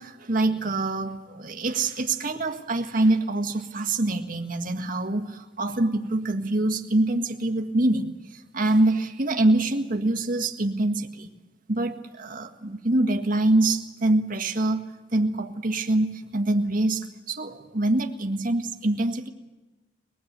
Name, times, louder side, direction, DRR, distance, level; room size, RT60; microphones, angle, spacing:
voice 1, 0.0-11.3 11.7-14.8 15.1-19.3, right 2 dB, 50° right, 4 dB, 1.7 m, -25 dB
24.0 x 20.0 x 8.3 m, 1.2 s
head